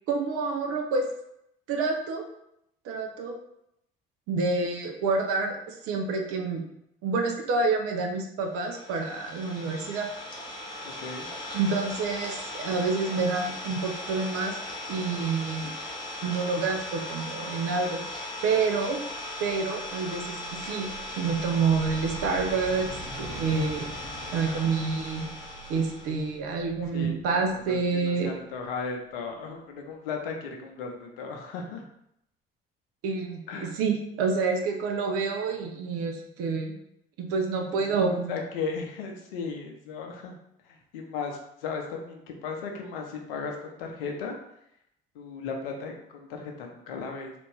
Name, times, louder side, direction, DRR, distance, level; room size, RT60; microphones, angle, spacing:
voice 1, 0.1-1.0 1.7-2.2 2.8-3.4 4.3-6.6 7.0-10.1 11.5-14.6 14.9-15.7 16.2-18.0 18.4-19.0 19.4-20.4 20.6-20.9 21.2-22.9 23.1-23.9 24.3-25.3 25.7-28.3 33.0-36.7 37.2-38.3, right 4 dB, 50° right, 2 dB, 0.7 m, -28 dB
Idling, 8.6-26.3, left 1 dB, 15° left, 1.0 m, -38 dB
voice 2, 10.8-11.3 26.9-31.8 33.5-33.7 37.7-37.8 38.1-40.4 40.6-44.4 45.1-47.3, left 5 dB, 70° left, 2 dB, 0.7 m, -36 dB
sound 1, 18.7-29.3, right 3 dB, 80° right, 0.9 m, -45 dB
3.3 x 2.5 x 3.3 m, 0.78 s
figure-of-eight pair, 50°, 29 cm